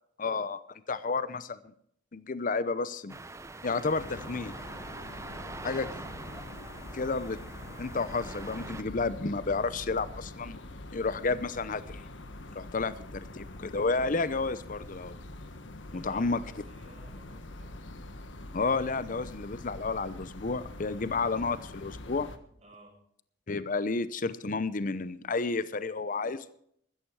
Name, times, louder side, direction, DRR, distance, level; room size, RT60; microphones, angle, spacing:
voice 1, 0.2-0.6 0.9-1.7 2.1-3.2 3.6-4.5 5.6-5.9 6.9-7.4 7.8-10.6 10.9-12.1 12.5-15.1 15.9-16.4 18.5-22.3 23.5-26.5, left 3 dB, 45° left, 15 dB, 0.7 m, -31 dB
sound 1, 3.1-8.8, right 2 dB, 15° right, 0.7 m, -44 dB
sound 2, 4.0-22.4, left 2 dB, 85° left, 1.4 m, -45 dB
voice 2, 15.9-17.8 22.6-22.9, right 1 dB, 40° right, -6 dB, 5.0 m, -57 dB
14.5 x 13.5 x 4.8 m, 0.67 s
head